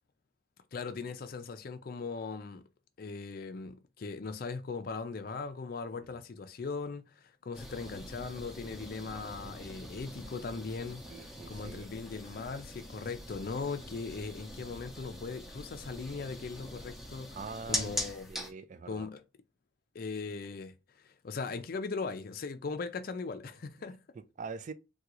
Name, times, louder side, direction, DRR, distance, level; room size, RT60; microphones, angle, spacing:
voice 1, 0.7-2.6 3.0-17.4 17.7-18.3 18.9-19.2 19.9-24.0, left 4 dB, 50° left, 0.4 m, -39 dB
sound 1, 7.5-18.5, left 1 dB, ahead, 0.6 m, -42 dB
voice 2, 11.1-11.9 17.4-17.9 18.3-19.1 24.2-24.7, right 5 dB, 40° right, 0.3 m, -43 dB
3.6 x 2.3 x 2.9 m
head